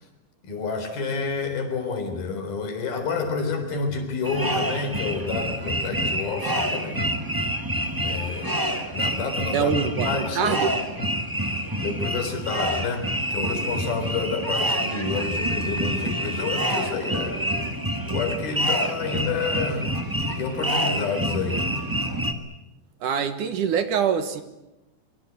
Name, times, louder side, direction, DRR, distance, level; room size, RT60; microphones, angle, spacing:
voice 1, 0.4-7.1 8.0-9.7 10.0-10.7 11.0-11.1 11.7-17.4 18.1-19.9 20.4-21.6, left 4 dB, 80° left, 7 dB, 5.8 m, -29 dB
sound 1, 4.2-22.3, right 1 dB, 25° right, 0.4 m, -27 dB
voice 2, 9.5-10.7 23.0-24.4, right 7 dB, 65° right, 9 dB, 2.7 m, -24 dB
25.0 x 24.0 x 8.3 m, 0.96 s
omnidirectional pair, 4.2 m